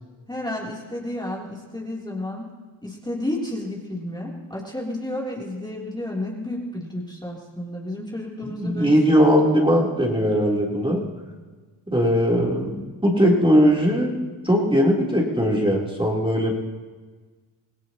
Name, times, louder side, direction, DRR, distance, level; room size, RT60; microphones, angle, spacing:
voice 1, 0.3-2.5 2.8-9.2, left 1 dB, 10° left, -4 dB, 3.4 m, -31 dB
voice 2, 8.6-11.0 11.9-16.5, equal, 10° right, -3 dB, 3.6 m, -19 dB
26.0 x 17.5 x 3.0 m, 1.4 s
cardioid pair, 70°, 49 cm